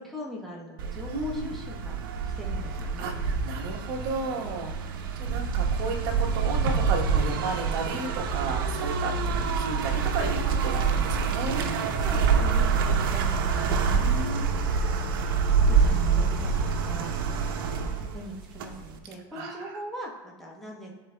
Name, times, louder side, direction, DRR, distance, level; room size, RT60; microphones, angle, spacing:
voice 1, 0.0-2.0 2.2-3.1 11.8-20.9, equal, ahead, -4 dB, 1.1 m, -42 dB
sound 1, 0.8-19.0, right 5 dB, 75° right, 0.7 m, -26 dB
voice 2, 1.1-1.5 3.0-11.6 13.9-14.8 15.7-16.2 19.3-19.8, right 3 dB, 55° right, 0 dB, 1.1 m, -34 dB
11.5 x 3.9 x 2.2 m, 1.2 s
supercardioid pair, 150°, 12 cm